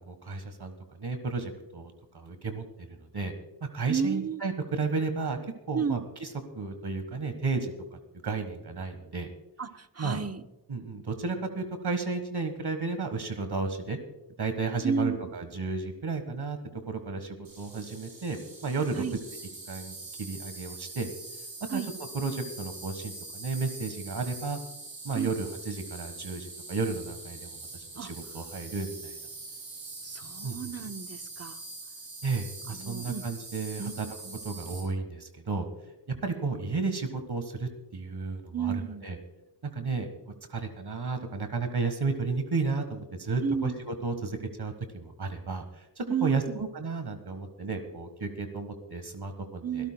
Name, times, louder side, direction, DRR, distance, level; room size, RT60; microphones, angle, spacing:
voice 1, 0.0-2.6 3.0-3.3 3.7-5.4 5.7-6.3 6.5-9.3 10.0-10.2 10.7-14.0 14.4-16.6 16.9-19.2 19.7-21.1 21.7-21.8 22.1-24.6 25.0-29.2 30.4-30.7 32.2-34.1 34.4-35.7 36.1-39.2 39.6-40.1 40.5-49.9, right 4 dB, 55° right, 7 dB, 1.5 m, -33 dB
voice 2, 3.9-4.4 5.7-6.0 9.6-10.4 14.8-15.2 18.9-19.2 21.7-21.9 25.1-25.4 28.0-28.1 30.0-31.6 32.7-33.2 33.8-34.4 38.5-39.1 43.4-43.7 46.1-46.6 49.6-49.9, right 6 dB, 30° right, 9 dB, 0.8 m, -32 dB
Insect, 17.4-34.8, right 3 dB, 75° right, 6.2 m, -43 dB
25.5 x 13.5 x 2.2 m, 0.94 s
cardioid pair, 60°, 47 cm